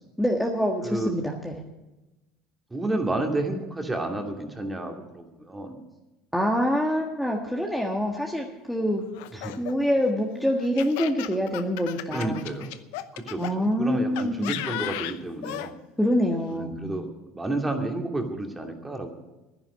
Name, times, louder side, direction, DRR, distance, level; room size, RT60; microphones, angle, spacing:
voice 1, 0.2-1.6 6.3-9.0 9.3-12.5 13.4-14.6 16.0-16.8, equal, 5° left, 0 dB, 1.7 m, -26 dB
voice 2, 2.7-5.8 9.4-9.5 12.1-12.7 13.1-13.5 13.8-15.8 16.5-17.1 17.3-19.1, right 2 dB, 15° right, 3 dB, 2.5 m, -30 dB
Laughter, 9.1-13.5 14.2-15.7, left 15 dB, 80° left, 0.7 m, -35 dB
11.0 x 10.5 x 9.7 m, 1.0 s
supercardioid pair, 90°, 0 cm